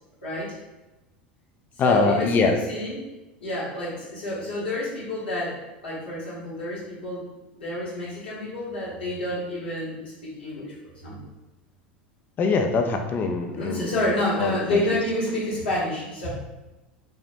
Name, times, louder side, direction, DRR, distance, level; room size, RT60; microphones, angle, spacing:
voice 1, 0.2-0.5 1.8-3.0 3.4-7.2 7.5-10.7 11.0-11.2 13.5-16.3, left 1 dB, 80° left, -6 dB, 1.4 m, -29 dB
voice 2, 1.8-2.6 12.4-14.1 14.4-14.8, left 4 dB, 35° left, 4 dB, 0.5 m, -23 dB
5.4 x 2.1 x 2.7 m, 1.0 s
hypercardioid pair, 80°, 5 cm